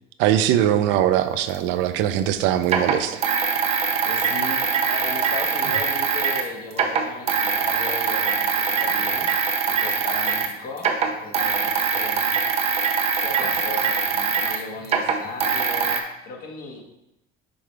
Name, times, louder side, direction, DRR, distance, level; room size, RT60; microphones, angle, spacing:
voice 1, 0.2-3.2 10.0-10.1, right 11 dB, 75° right, 11 dB, 0.5 m, -21 dB
sound 1, 1.5-1.6 2.6-6.5 6.7-10.5 10.8-16.0, right 6 dB, 35° right, 0.7 m, -23 dB
voice 2, 4.0-9.3 9.6-10.9 11.2-12.3 13.1-16.9, left 4 dB, 45° left, 0 dB, 1.4 m, -36 dB
5.2 x 4.9 x 4.5 m, 0.88 s
cardioid pair, 150°, 20 cm